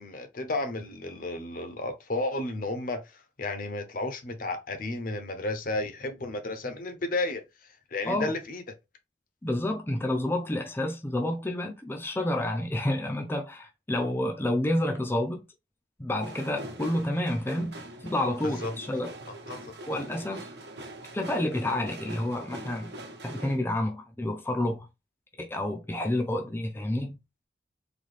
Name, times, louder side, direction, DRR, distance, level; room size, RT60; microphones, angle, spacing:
voice 1, 0.0-3.0 3.4-7.4 7.9-8.6 18.6-18.7 19.5-19.8, left 2 dB, 50° left, 0.8 m, -32 dB
voice 2, 9.4-15.4 16.0-19.1 19.9-20.4 21.1-22.9 23.2-24.9 25.4-27.2, left 1 dB, 15° left, 0.5 m, -29 dB
sound 1, 16.2-23.6, right 1 dB, 65° right, 1.0 m, -43 dB
4.0 x 2.8 x 3.2 m
head